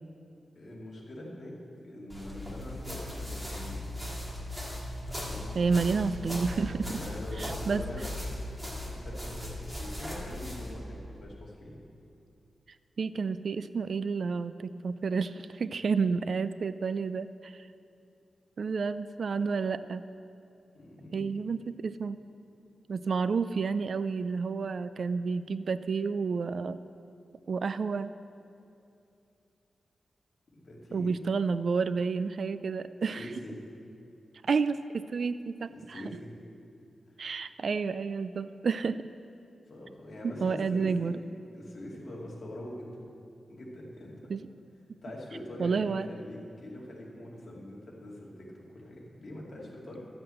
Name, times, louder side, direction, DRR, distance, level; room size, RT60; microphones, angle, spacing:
voice 1, 0.5-1.6 1.8-3.8 5.1-5.6 6.9-8.0 8.7-11.8 20.7-21.3 30.6-31.2 33.2-33.5 35.7-36.3 39.7-41.1 41.5-43.0 43.5-44.3 45.0-50.0, left 1 dB, 45° left, -3 dB, 2.5 m, -43 dB
sound 1, 2.1-10.7, left 1 dB, 5° right, 2.0 m, -38 dB
voice 2, 5.5-7.0 7.4-7.8 13.0-17.7 18.6-20.0 21.1-22.2 22.9-26.8 27.5-28.1 30.9-33.3 34.4-36.1 37.2-39.1 40.2-41.2 44.3-44.5 45.6-46.1, right 5 dB, 55° right, 13 dB, 0.3 m, -30 dB
12.0 x 7.7 x 7.7 m, 2.6 s
wide cardioid pair, 150°, 0 cm